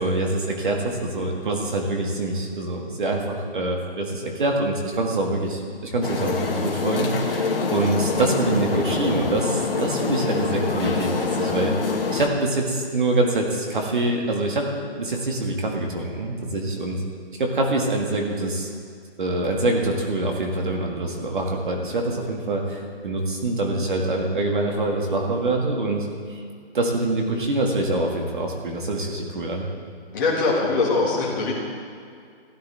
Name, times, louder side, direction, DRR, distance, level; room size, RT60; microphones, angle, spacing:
voice 1, 0.0-11.7 12.1-14.7 15.0-17.0 17.4-18.7 19.2-26.4 26.7-29.7, right 2 dB, 50° right, 1 dB, 1.9 m, -25 dB
sound 1, 6.0-12.3, left 4 dB, 60° left, 1.6 m, -25 dB
voice 2, 30.1-31.5, left 3 dB, 20° left, -6 dB, 1.8 m, -22 dB
16.0 x 10.5 x 3.4 m, 2.3 s
hypercardioid pair, 175°, 32 cm